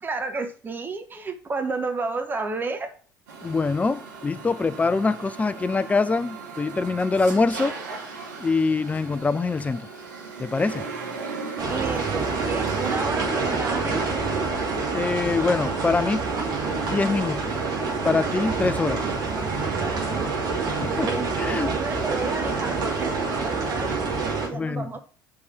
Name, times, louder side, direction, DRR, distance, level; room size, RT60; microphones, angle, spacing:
voice 1, 0.0-2.9 11.7-14.2 19.8-20.7 21.0-24.0 24.4-25.0, right 3 dB, 20° right, 1.0 m, -32 dB
sound 1, 3.3-13.0, right 4 dB, 65° right, 1.6 m, -38 dB
voice 2, 3.4-7.7 8.4-9.9 10.4-10.9 14.9-16.2 16.9-17.5 18.0-19.0 20.8-21.1 21.4-21.7 24.5-24.9, left 4 dB, 15° left, 0.5 m, -24 dB
sound 2, 11.6-24.5, right 4 dB, 45° right, 2.7 m, -27 dB
5.3 x 4.8 x 6.2 m
figure-of-eight pair, 65°, 10 cm